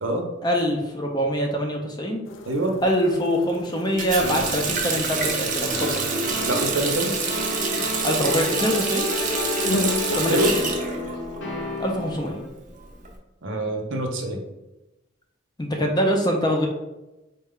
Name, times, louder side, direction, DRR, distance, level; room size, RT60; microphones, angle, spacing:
voice 1, 0.4-2.2 2.8-6.0 8.0-9.1 10.1-10.7 11.8-12.4 15.6-16.7, equal, 20° left, 1 dB, 0.5 m, -24 dB
sound 1, 2.2-10.7, left 2 dB, 80° left, 0.4 m, -35 dB
Water tap faucet, 4.0-11.7 12.0-13.1, right 4 dB, 40° right, 0.5 m, -27 dB
sound 2, 4.2-12.4, left 2 dB, 65° left, 0.8 m, -32 dB
voice 2, 6.5-7.2 10.3-10.5 13.4-14.4, right 1 dB, 75° right, 3 dB, 0.7 m, -25 dB
4.1 x 2.2 x 3.6 m, 1.0 s
head